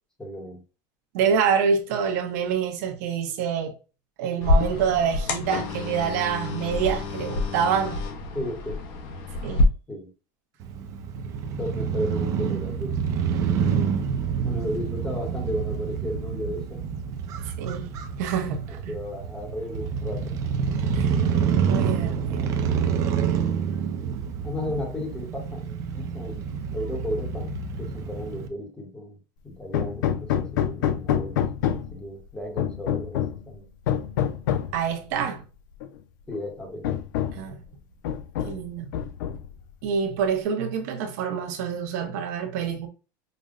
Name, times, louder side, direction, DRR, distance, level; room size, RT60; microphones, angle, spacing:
voice 1, 0.2-0.6 8.3-8.8 9.9-10.1 11.6-13.0 13.6-14.0 14.4-16.8 18.7-20.3 24.4-29.2 29.4-31.4 31.7-33.6 36.3-37.0, left 1 dB, 10° left, 0.9 m, -34 dB
voice 2, 1.1-3.7 4.2-8.0 9.4-9.6 17.4-18.9 20.9-21.2 21.7-22.5 34.7-35.4 37.3-37.6 38.5-38.9 39.8-42.9, right 7 dB, 60° right, 0.8 m, -26 dB
sound 1, 4.4-9.6, left 2 dB, 50° left, 0.7 m, -27 dB
Crow / Motorcycle, 10.6-28.5, right 7 dB, 35° right, 0.4 m, -27 dB
Hammer, 29.7-32.0 32.6-33.4 33.9-34.8 35.8-35.9 36.3-36.4 36.8-37.5 38.0-38.7 38.9-39.6, left 10 dB, 90° left, 0.5 m, -27 dB
5.1 x 2.1 x 2.4 m
cardioid pair, 175°, 10 cm